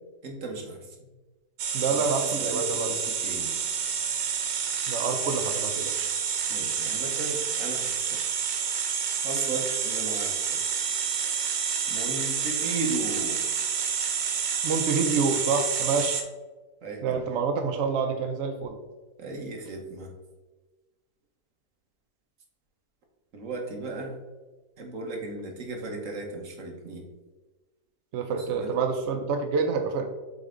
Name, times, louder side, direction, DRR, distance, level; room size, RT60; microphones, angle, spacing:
voice 1, 0.2-1.1 1.8-2.1 2.3-3.5 6.5-8.2 9.2-10.6 11.9-13.4 16.8-17.2 19.2-20.1 23.3-24.2 24.8-27.0 28.4-28.8, right 3 dB, 50° right, 1 dB, 1.3 m, -36 dB
sound 1, 1.6-16.2, right 7 dB, 90° right, 1.5 m, -29 dB
voice 2, 1.7-3.0 4.9-6.1 14.6-16.2 17.0-18.8 28.1-30.1, right 4 dB, 70° right, 5 dB, 0.6 m, -27 dB
7.6 x 3.5 x 3.7 m, 1.2 s
omnidirectional pair, 1.9 m